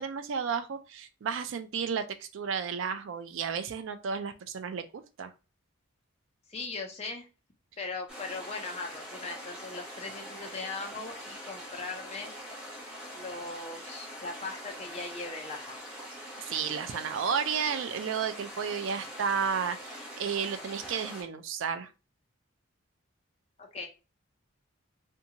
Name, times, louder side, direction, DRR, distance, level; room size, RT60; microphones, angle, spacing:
voice 1, 0.0-4.8 5.2-5.3 16.4-21.9, right 6 dB, 65° right, 10 dB, 0.3 m, -32 dB
voice 2, 6.5-7.3 7.8-12.3 13.1-15.8 23.6-23.9, left 3 dB, 30° left, 2 dB, 0.5 m, -39 dB
sound 1, 8.1-21.2, equal, 5° right, 0.8 m, -43 dB
2.6 x 2.2 x 2.8 m, 0.31 s
head